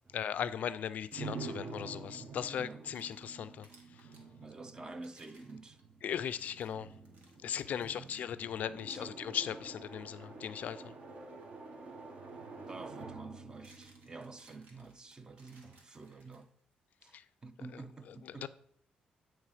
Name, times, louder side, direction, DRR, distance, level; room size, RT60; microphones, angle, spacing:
voice 1, 0.1-3.7 4.0-4.1 6.0-6.9 7.4-10.9 17.1-17.2 18.1-18.5, left 9 dB, 65° left, 0.3 m, -38 dB
sound 1, 1.1-14.9, right 4 dB, 50° right, 1.0 m, -48 dB
voice 2, 2.5-2.8 4.4-5.8 7.8-8.2 8.9-9.1 12.7-16.5 17.0-18.5, right 3 dB, 25° right, 0.5 m, -49 dB
sound 2, 2.7-4.3 4.9-8.3 8.8-8.9 9.6-9.8 11.9-12.0 13.2-16.7, right 2 dB, 75° right, 1.5 m, -65 dB
8.7 x 3.1 x 4.8 m
cardioid pair, 110°, 3 cm